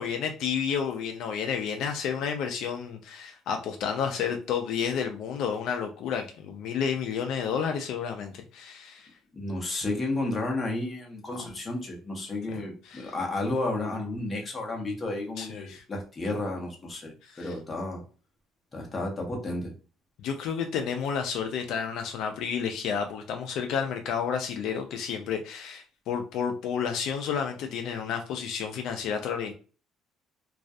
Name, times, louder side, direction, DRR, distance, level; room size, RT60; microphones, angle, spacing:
voice 1, 0.0-9.1 11.4-11.5 12.5-12.6 12.8-13.1 15.4-15.8 17.2-17.5 20.2-29.5, left 7 dB, 65° left, 5 dB, 0.3 m, -31 dB
voice 2, 9.3-17.1 17.4-18.0 18.7-19.7, left 2 dB, 20° left, 0 dB, 0.7 m, -32 dB
2.3 x 2.1 x 2.6 m, 0.37 s
cardioid pair, 150°, 0 cm